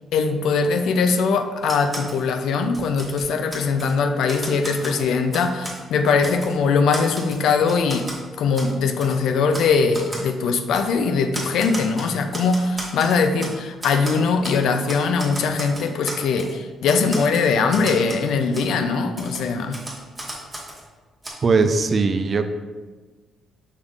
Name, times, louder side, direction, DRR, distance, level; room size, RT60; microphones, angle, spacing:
voice 1, 0.1-8.1 8.4-19.8, left 5 dB, 80° left, 7 dB, 0.3 m, -21 dB
Typewriter, 1.6-2.2 2.6-3.9 4.3-5.8 6.2-6.5 6.9-8.2 8.5-8.7 9.0-9.2 9.5-9.7 9.9-10.3 10.7-10.9 11.3-13.5 13.8-14.6 14.9-16.5 16.9-18.3 18.5-18.7 19.2-20.8 21.2-21.3, right 1 dB, 15° right, 1.1 m, -34 dB
voice 2, 21.4-22.5, right 4 dB, 40° right, 8 dB, 0.3 m, -19 dB
5.5 x 3.5 x 2.4 m, 1.4 s
cardioid pair, 90°, 0 cm